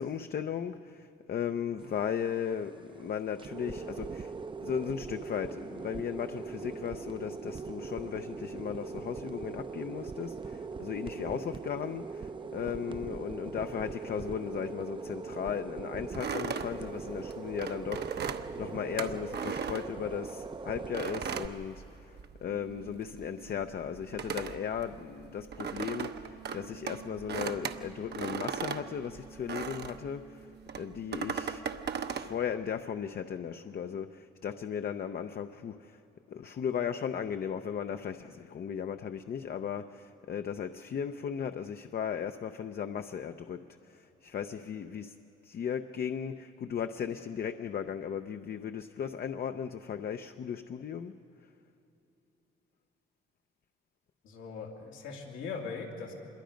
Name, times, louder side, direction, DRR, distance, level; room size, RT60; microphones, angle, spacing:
voice 1, 0.0-4.3 4.6-22.1 22.4-30.5 30.7-31.6 32.1-36.0 36.3-45.1 45.4-51.2, left 8 dB, 50° left, 7 dB, 0.7 m, -36 dB
sound 1, 1.8-21.5, right 4 dB, 25° right, 0.6 m, -41 dB
sound 2, 16.1-20.4 20.9-22.4 22.7-30.1 30.7-32.3, right 7 dB, 55° right, 1.0 m, -37 dB
sound 3, 22.5-32.5, right 7 dB, 75° right, 1.5 m, -53 dB
voice 2, 54.2-56.1, left 5 dB, 90° left, 0 dB, 2.7 m, -40 dB
26.0 x 22.0 x 5.2 m, 2.8 s
cardioid pair, 90°, 20 cm